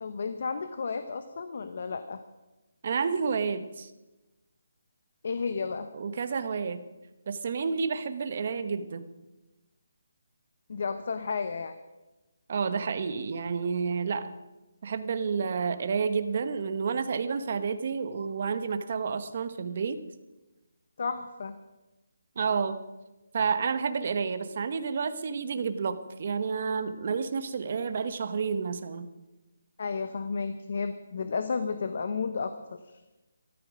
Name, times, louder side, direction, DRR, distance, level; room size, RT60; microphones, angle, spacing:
voice 1, 0.0-2.2 5.2-5.9 10.7-11.8 21.0-21.6 29.8-33.0, left 5 dB, 45° left, 10 dB, 0.9 m, -32 dB
voice 2, 2.8-3.9 5.9-6.8 7.3-9.0 12.5-14.3 14.8-20.0 22.4-22.8 23.3-29.1, right 5 dB, 35° right, 10 dB, 1.0 m, -30 dB
14.0 x 13.5 x 6.2 m, 1.1 s
hypercardioid pair, 175°, 0 cm